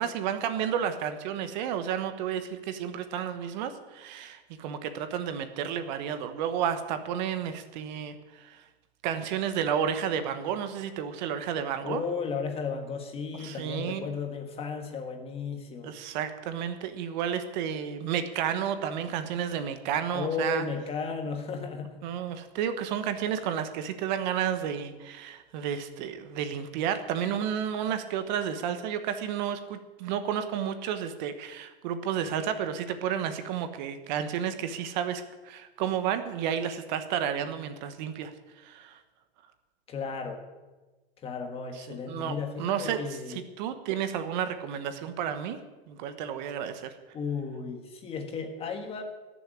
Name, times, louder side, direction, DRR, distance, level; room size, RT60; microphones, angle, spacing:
voice 1, 0.0-8.6 9.0-12.0 13.4-14.1 15.8-20.6 22.0-38.3 38.6-39.0 41.9-43.0 43.3-45.6 45.9-46.9, right 8 dB, 45° right, 9 dB, 1.3 m, -31 dB
voice 2, 11.8-16.0 20.1-22.0 39.9-40.4 41.2-43.4 47.1-49.0, left 5 dB, 20° left, 5 dB, 1.6 m, -34 dB
18.0 x 7.3 x 8.5 m, 1.2 s
supercardioid pair, 155°, 31 cm